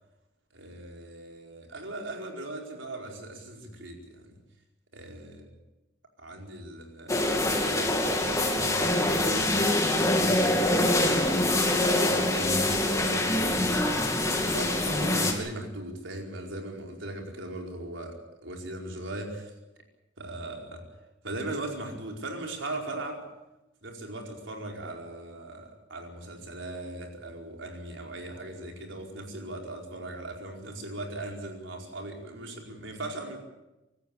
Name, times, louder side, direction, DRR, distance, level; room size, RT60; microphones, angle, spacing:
voice 1, 0.5-4.3 4.9-5.5 6.2-10.5 11.7-14.1 14.5-19.5 20.2-20.9 21.2-23.3 23.8-33.4, right 1 dB, 75° right, 1 dB, 4.8 m, -39 dB
sound 1, 7.1-15.3, left 1 dB, 15° left, 2.8 m, -25 dB
26.0 x 14.0 x 8.6 m, 0.98 s
head